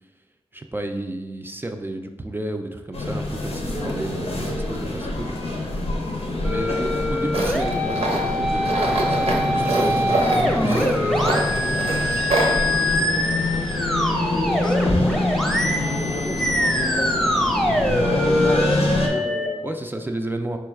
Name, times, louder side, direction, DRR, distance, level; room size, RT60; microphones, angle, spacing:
voice 1, 0.5-5.3 6.4-11.5 19.6-20.6, right 1 dB, 20° right, 5 dB, 0.3 m, -32 dB
sound 1, 2.9-19.1, left 2 dB, 90° left, 0.7 m, -26 dB
sound 2, 6.4-19.5, left 1 dB, ahead, 0.8 m, -24 dB
Tools, 7.3-12.6, right 2 dB, 85° right, 0.7 m, -26 dB
voice 2, 12.1-13.5 14.5-15.2 15.6-17.3 17.9-19.8, left 2 dB, 50° left, 4 dB, 0.5 m, -35 dB
4.4 x 2.3 x 4.5 m, 1.2 s
wide cardioid pair, 70°, 10 cm